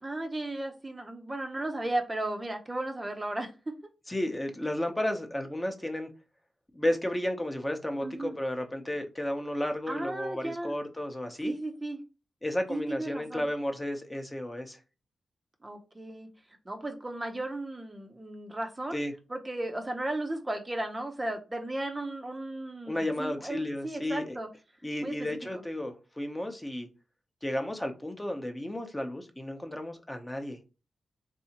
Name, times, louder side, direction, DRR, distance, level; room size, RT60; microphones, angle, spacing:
voice 1, 0.0-3.5 8.0-8.4 9.9-10.8 11.4-12.0 12.7-13.5 15.6-16.3 16.7-19.0 19.3-24.5 25.0-25.3, right 1 dB, 25° right, 0.6 m, -35 dB
voice 2, 4.1-6.1 6.7-11.5 12.4-14.8 18.9-19.1 22.9-24.4 24.8-26.9 27.4-30.6, left 1 dB, 15° left, 0.7 m, -33 dB
3.3 x 2.7 x 2.8 m
cardioid pair, 65°, 0 cm